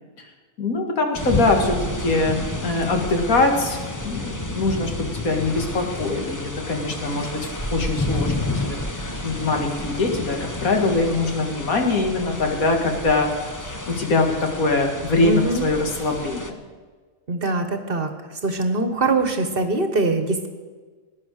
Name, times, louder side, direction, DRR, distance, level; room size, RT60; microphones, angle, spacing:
voice 1, 0.6-7.4 7.7-13.3 13.6-16.6, left 3 dB, 85° left, 3 dB, 2.3 m, -23 dB
sound 1, 1.1-16.5, left 2 dB, 15° left, 1.0 m, -30 dB
voice 2, 15.2-15.6 17.3-18.1 18.4-20.5, right 2 dB, 45° right, 7 dB, 1.4 m, -22 dB
19.5 x 9.8 x 6.4 m, 1.4 s
omnidirectional pair, 1.4 m